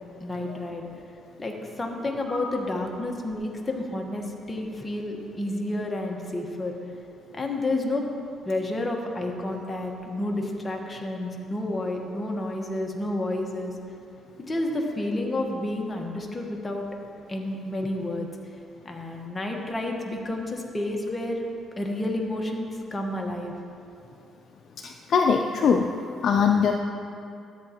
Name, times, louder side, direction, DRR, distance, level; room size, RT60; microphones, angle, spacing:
voice 1, 0.2-0.9 1.4-6.8 7.3-8.0 8.4-13.7 14.4-16.9 17.3-18.3 18.8-21.5 21.8-23.5, left 1 dB, 20° left, 1 dB, 1.2 m, -30 dB
voice 2, 24.8-25.9 26.2-26.7, left 6 dB, 60° left, 3 dB, 0.4 m, -22 dB
13.5 x 8.0 x 2.9 m, 2.5 s
cardioid pair, 90°, 0 cm